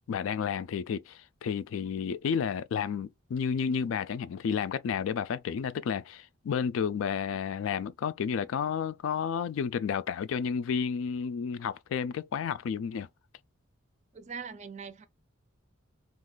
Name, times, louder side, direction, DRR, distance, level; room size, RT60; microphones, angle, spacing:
voice 1, 0.1-13.1, left 7 dB, 70° left, 0.3 m, -31 dB
voice 2, 14.1-15.1, right 6 dB, 35° right, 0.4 m, -41 dB
2.5 x 2.3 x 3.6 m
head